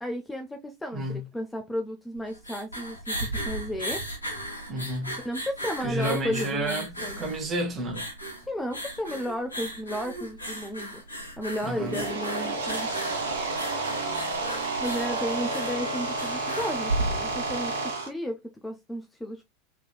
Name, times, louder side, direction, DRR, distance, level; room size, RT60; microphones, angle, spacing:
voice 1, 0.0-4.0 5.2-7.3 8.4-11.0 11.4-12.9 14.8-19.4, equal, 5° left, 0.6 m, -33 dB
sound 1, 2.2-17.6, right 1 dB, 85° left, 1.1 m, -36 dB
voice 2, 4.7-5.2 5.8-8.0 11.6-12.0, right 1 dB, 30° right, 1.1 m, -31 dB
sound 2, 11.6-18.1, right 3 dB, 70° right, 1.2 m, -30 dB
3.3 x 3.1 x 2.2 m
figure-of-eight pair, 85°, 0 cm